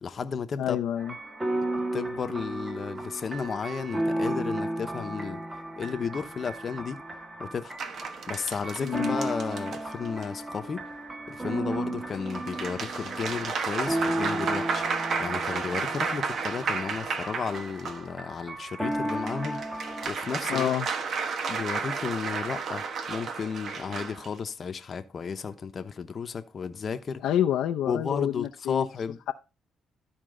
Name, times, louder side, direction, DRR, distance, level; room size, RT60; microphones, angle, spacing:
voice 1, 0.0-0.8 1.6-1.7 1.9-5.4 5.8-7.0 7.4-7.8 8.3-10.8 11.3-19.6 20.1-20.7 21.5-27.2 27.9-29.2, left 6 dB, 45° left, 0.9 m, -33 dB
voice 2, 0.6-1.1 8.8-9.2 20.5-20.9 27.2-28.8, left 11 dB, 85° left, 0.6 m, -27 dB
sound 1, 1.0-20.1, right 1 dB, 20° right, 1.5 m, -34 dB
sound 2, 7.8-10.2 12.1-18.1 18.9-24.3, right 5 dB, 60° right, 1.1 m, -32 dB
13.0 x 4.4 x 3.8 m
cardioid pair, 90°, 0 cm